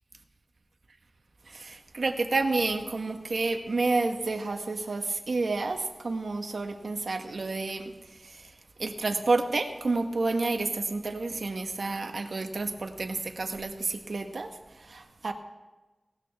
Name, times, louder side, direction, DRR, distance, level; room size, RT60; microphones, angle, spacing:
voice 1, 1.5-7.9 8.2-8.4 8.8-14.5 14.8-15.3, right 3 dB, 70° right, 6 dB, 1.2 m, -30 dB
18.0 x 13.0 x 3.5 m, 1.1 s
wide cardioid pair, 70°, 0 cm